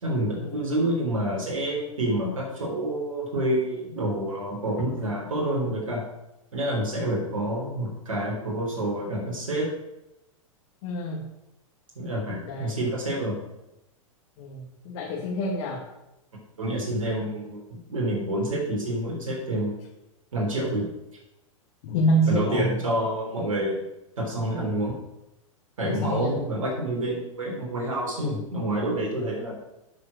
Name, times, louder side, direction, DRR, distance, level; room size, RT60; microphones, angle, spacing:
voice 1, 0.0-6.0 6.5-9.7 12.0-13.4 16.6-19.8 20.3-20.9 22.2-23.8 24.2-24.9 25.8-29.5, right 1 dB, 70° right, -2 dB, 3.5 m, -28 dB
voice 2, 10.8-11.2 12.4-12.7 14.4-15.9 21.8-22.8 25.8-26.4, right 1 dB, 50° left, -1 dB, 1.9 m, -27 dB
9.4 x 6.0 x 6.3 m, 0.91 s
figure-of-eight pair, 105°, 18 cm